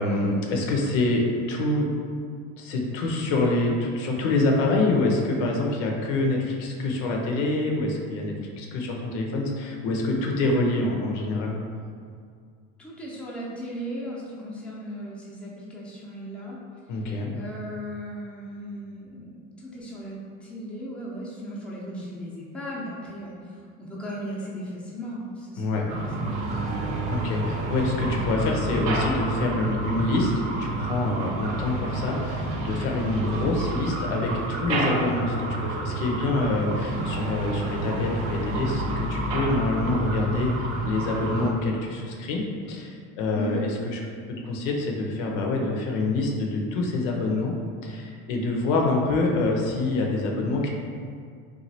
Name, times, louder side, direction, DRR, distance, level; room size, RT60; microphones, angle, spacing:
voice 1, 0.0-1.9 2.6-11.6 16.9-17.3 25.6-25.9 27.1-42.4 42.7-44.0 44.4-47.5 47.8-50.7, left 2 dB, 85° left, 0 dB, 0.6 m, -26 dB
voice 2, 12.8-16.6 17.3-26.8 43.3-43.6, equal, 5° left, -6 dB, 0.5 m, -37 dB
sound 1, 25.9-41.5, right 2 dB, 90° right, 0.6 m, -29 dB
3.0 x 2.3 x 2.7 m, 2.2 s
supercardioid pair, 100°, 37 cm